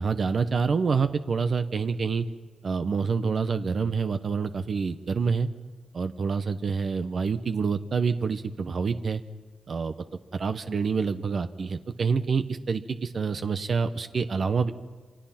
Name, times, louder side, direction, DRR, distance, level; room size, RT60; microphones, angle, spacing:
voice 1, 0.0-2.2 2.6-5.5 5.9-9.2 9.7-9.9 10.3-14.7, right 5 dB, 55° right, 9 dB, 1.0 m, -27 dB
28.5 x 25.5 x 5.9 m, 1.5 s
cardioid pair, 90°, 0 cm